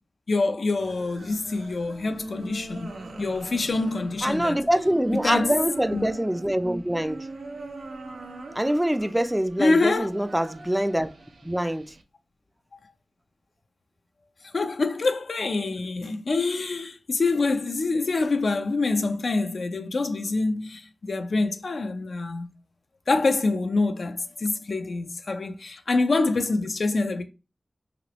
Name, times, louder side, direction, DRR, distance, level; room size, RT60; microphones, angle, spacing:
voice 1, 0.3-2.9 3.2-4.6 5.1-5.6 5.9-6.1 9.6-10.1 14.5-22.5 23.1-27.2, left 3 dB, 75° left, 0.4 m, -25 dB
sound 1, 0.8-12.0, right 2 dB, 90° right, 0.5 m, -41 dB
voice 2, 4.2-7.3 8.5-11.1 11.4-11.9, right 1 dB, 10° right, 0.4 m, -24 dB
3.0 x 2.9 x 2.9 m
cardioid pair, 40°, 0 cm